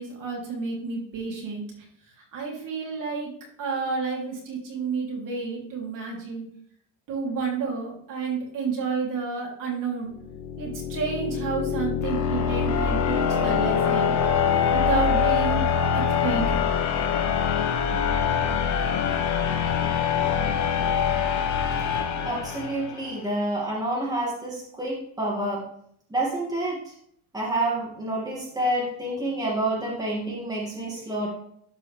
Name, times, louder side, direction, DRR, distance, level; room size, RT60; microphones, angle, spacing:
voice 1, 0.0-1.6 2.3-3.3 3.6-6.5 7.1-10.1 10.6-14.2 14.7-15.6 15.9-16.6 17.9-18.0 18.4-18.5 18.9-19.0 19.8-19.9, right 5 dB, 50° right, -1 dB, 3.0 m, -30 dB
sound 1, 10.2-23.1, left 7 dB, 45° left, 1.2 m, -24 dB
voice 2, 22.2-25.7 26.1-26.9 27.3-31.3, right 1 dB, 10° right, -4 dB, 2.2 m, -28 dB
12.0 x 4.8 x 3.4 m, 0.67 s
cardioid pair, 125°, 40 cm